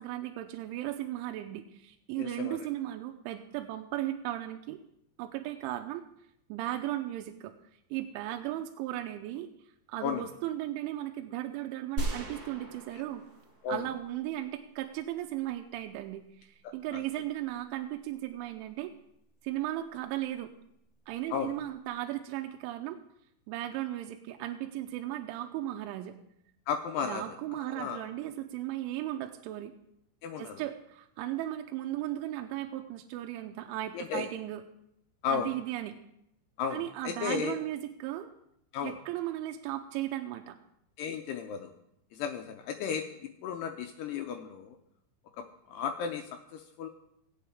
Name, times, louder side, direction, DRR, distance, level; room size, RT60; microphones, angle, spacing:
voice 1, 0.0-4.8 5.2-6.1 6.5-7.5 7.9-9.5 9.9-13.2 13.7-18.9 19.4-20.5 21.1-23.0 23.5-26.2 27.0-29.7 30.4-34.6 35.3-36.0 36.7-38.3 38.8-40.6, right 14 dB, 85° right, 5 dB, 3.0 m, -36 dB
voice 2, 2.2-2.6 10.0-10.2 13.6-13.8 16.9-17.0 21.3-21.5 26.7-27.2 27.6-28.0 30.2-30.6 33.9-34.3 35.2-35.5 36.6-37.6 38.7-38.9 41.0-41.7 42.1-43.1 43.4-44.8 45.4-46.9, left 6 dB, 85° left, 4 dB, 2.3 m, -34 dB
sound 1, 12.0-14.2, right 2 dB, 45° right, 1.9 m, -37 dB
18.5 x 8.4 x 3.5 m, 0.77 s
omnidirectional pair, 5.4 m